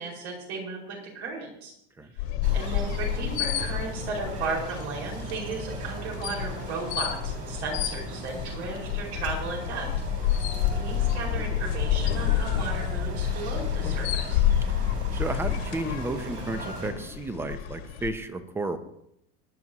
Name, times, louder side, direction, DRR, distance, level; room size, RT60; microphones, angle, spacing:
voice 1, 0.0-1.7 2.1-2.2 2.5-9.9 10.7-14.5, right 4 dB, 85° right, -1 dB, 5.3 m, -35 dB
sound 1, 2.2-18.1, left 10 dB, 85° left, 1.8 m, -29 dB
sound 2, 2.4-16.9, right 3 dB, 35° right, 3.4 m, -38 dB
voice 2, 15.1-18.8, right 2 dB, 10° right, 10 dB, 0.6 m, -33 dB
20.0 x 10.5 x 2.9 m, 0.75 s
cardioid pair, 165°, 31 cm